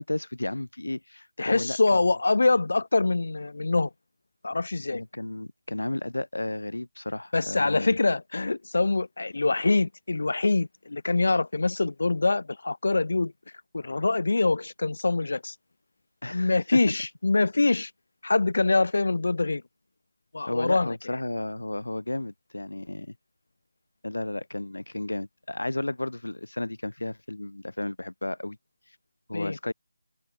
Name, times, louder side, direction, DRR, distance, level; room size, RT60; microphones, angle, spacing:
voice 1, 0.0-1.8 4.9-8.0 16.2-16.8 20.5-23.1 24.0-28.6 29.3-29.7, left 2 dB, 90° left, 1.5 m, -33 dB
voice 2, 1.4-3.9 4.4-5.0 7.3-13.3 13.7-15.5 16.3-17.9 18.2-19.6 20.3-21.2 29.3-29.6, left 3 dB, 65° left, 1.1 m, -24 dB
figure-of-eight pair, 165°, 0 cm